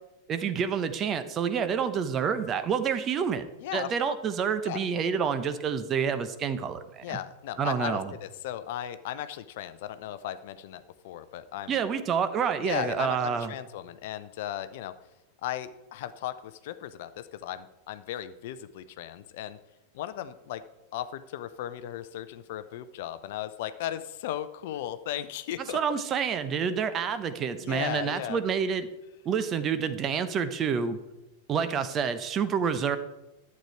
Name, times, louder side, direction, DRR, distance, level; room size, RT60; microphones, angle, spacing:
voice 1, 0.3-3.5 3.7-7.2 7.6-8.1 11.7-13.5 25.7-28.9 29.2-31.0 31.5-33.0, right 7 dB, 30° right, 11 dB, 0.9 m, -28 dB
voice 2, 3.6-4.1 4.6-4.8 7.0-11.8 12.6-14.9 15.4-19.6 19.9-20.6 20.9-26.0 27.6-28.4, left 12 dB, 50° left, 13 dB, 0.6 m, -36 dB
11.5 x 8.4 x 4.6 m, 0.95 s
figure-of-eight pair, 90°, 0 cm